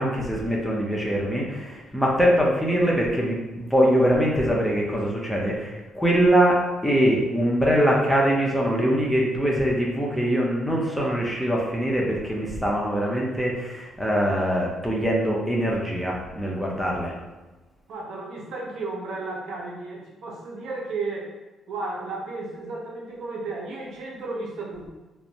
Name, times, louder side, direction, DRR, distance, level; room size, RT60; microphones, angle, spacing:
voice 1, 0.0-17.1, equal, ahead, -3 dB, 0.6 m, -23 dB
voice 2, 17.9-21.3 21.7-24.9, right 3 dB, 75° right, -2 dB, 0.6 m, -33 dB
2.5 x 2.1 x 2.9 m, 1.1 s
cardioid pair, 90°, 0 cm